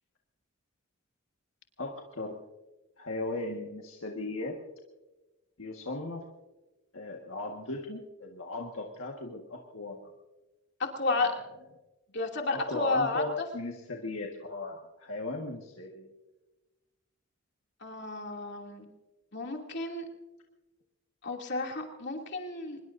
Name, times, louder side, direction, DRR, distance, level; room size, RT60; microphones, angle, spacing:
voice 1, 1.8-2.4 3.0-4.6 5.6-6.2 6.9-10.1 11.2-11.3 12.5-16.1 19.8-19.9, left 2 dB, 70° left, 1 dB, 1.6 m, -37 dB
voice 2, 10.8-11.3 12.1-13.2 17.8-18.8 19.3-20.0 21.2-22.8, left 3 dB, 50° left, 1 dB, 2.7 m, -31 dB
24.5 x 21.5 x 2.7 m, 1.1 s
head